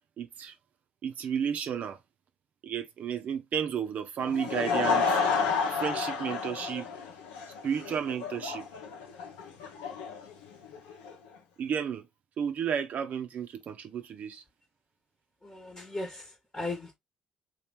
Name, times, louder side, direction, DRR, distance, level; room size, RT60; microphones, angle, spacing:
voice 1, 0.2-0.5 1.0-2.0 2.6-5.1 5.7-6.9 7.6-8.7 11.6-12.1 12.4-14.4, right 7 dB, 55° right, 0.8 m, -32 dB
Laughter / Crowd, 4.2-11.1, left 5 dB, 80° left, 0.8 m, -31 dB
voice 2, 15.4-17.0, left 2 dB, 15° left, 1.2 m, -37 dB
3.0 x 2.5 x 3.4 m
hypercardioid pair, 50°, 3 cm